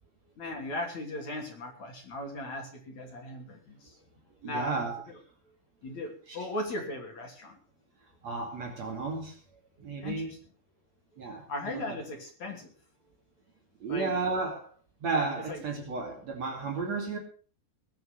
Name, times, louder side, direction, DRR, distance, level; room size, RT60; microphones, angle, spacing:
voice 1, 0.4-4.0 4.4-4.9 5.8-7.6 10.0-10.4 11.5-12.7 13.9-14.1 15.5-15.6, left 1 dB, 45° left, 2 dB, 3.7 m, -37 dB
voice 2, 4.4-4.9 6.3-6.5 8.2-9.4 9.8-10.3 11.2-12.0 13.8-14.7 15.0-17.2, right 4 dB, 40° right, 1 dB, 3.3 m, -33 dB
21.5 x 8.0 x 6.4 m, 0.42 s
omnidirectional pair, 5.2 m